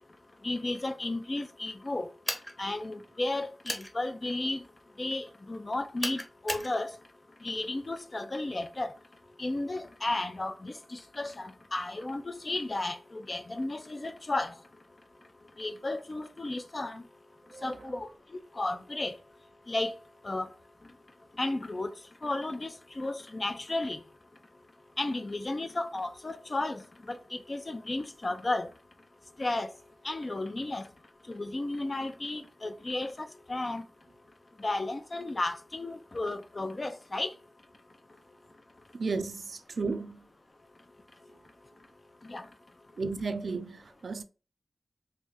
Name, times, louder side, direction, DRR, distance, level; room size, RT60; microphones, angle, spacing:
voice 1, 0.4-2.1 2.6-4.6 5.0-6.9 7.4-8.9 9.4-14.5 15.6-17.0 17.6-18.1 18.6-19.1 19.7-20.0 20.2-20.5 21.4-21.9 22.2-24.0 25.0-26.8 27.1-28.7 29.4-29.7 30.0-30.8 31.3-33.8 34.6-37.3 42.3-42.4, left 2 dB, 45° left, 0.5 m, -33 dB
sound 1, 2.2-2.5 3.6-3.9 6.0-6.7, equal, 15° left, 1.0 m, -34 dB
voice 2, 17.5-18.0 38.9-40.2 43.0-44.2, right 4 dB, 75° right, 0.4 m, -34 dB
3.2 x 2.6 x 3.4 m
wide cardioid pair, 70°, 0 cm